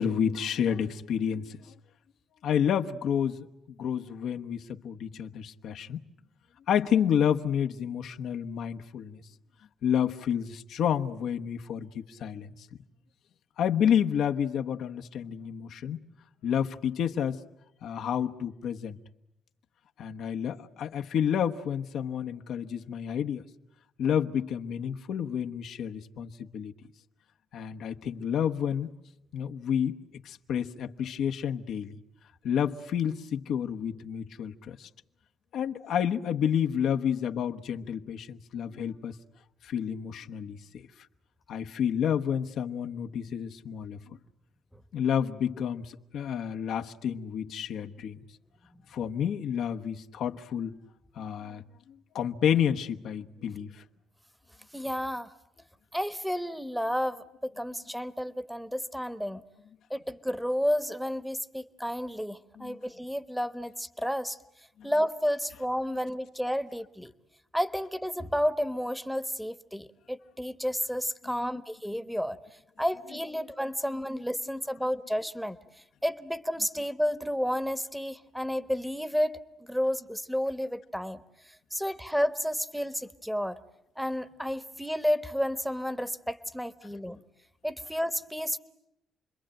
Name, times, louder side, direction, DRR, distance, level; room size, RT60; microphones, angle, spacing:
voice 1, 0.0-1.6 2.4-3.5 3.8-6.0 6.7-9.2 9.8-12.5 13.6-16.0 16.4-17.4 17.8-19.0 20.0-23.4 24.0-26.7 27.5-28.9 29.3-30.0 30.2-32.0 32.4-34.9 35.5-39.1 39.6-40.9 41.5-44.0 44.9-48.2 48.9-50.8 51.2-51.6 52.1-53.8 62.6-62.8 64.8-64.9 71.5-71.6, left 8 dB, 75° left, 1.1 m, -30 dB
voice 2, 54.7-55.3 55.9-59.4 59.9-64.4 64.8-67.1 67.5-72.4 72.8-75.6 76.0-83.6 84.0-87.2 87.6-88.6, equal, ahead, 1.2 m, -31 dB
29.0 x 22.0 x 9.0 m
cardioid pair, 90°, 0 cm